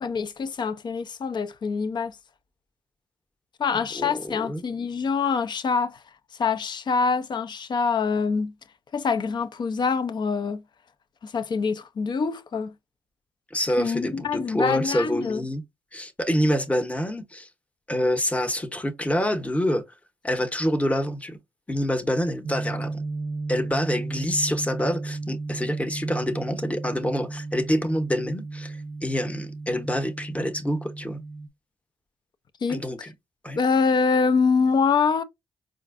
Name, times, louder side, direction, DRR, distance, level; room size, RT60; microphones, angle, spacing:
voice 1, 0.0-2.2 3.6-6.0 6.4-8.5 8.9-10.6 11.2-12.7 13.8-15.4 32.6-33.1 33.6-35.2, left 5 dB, 55° left, 0.5 m, -25 dB
voice 2, 3.7-4.6 13.5-15.6 15.9-17.5 17.9-19.8 20.2-21.4 21.7-23.0 23.5-31.2 32.7-33.1 33.4-33.6, equal, 15° left, 0.8 m, -26 dB
sound 1, 22.4-31.5, right 3 dB, 60° right, 0.5 m, -34 dB
4.3 x 2.5 x 2.4 m
supercardioid pair, 55°, 9 cm